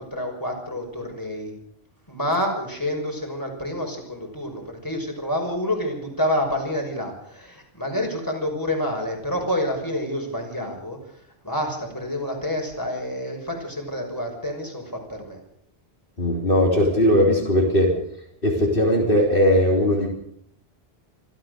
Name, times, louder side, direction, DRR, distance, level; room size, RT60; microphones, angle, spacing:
voice 1, 0.0-1.5 2.1-15.4, left 1 dB, 20° left, 1 dB, 6.1 m, -28 dB
voice 2, 16.2-17.9 18.4-20.1, left 1 dB, 60° left, 0 dB, 3.9 m, -19 dB
26.0 x 15.0 x 6.7 m, 0.69 s
omnidirectional pair, 1.1 m